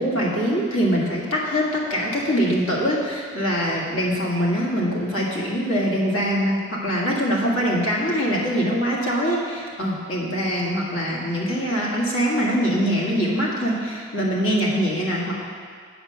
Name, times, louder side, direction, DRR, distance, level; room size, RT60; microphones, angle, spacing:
voice 1, 0.0-15.3, equal, 90° left, -4 dB, 1.9 m, -23 dB
8.6 x 5.0 x 6.7 m, 2.1 s
head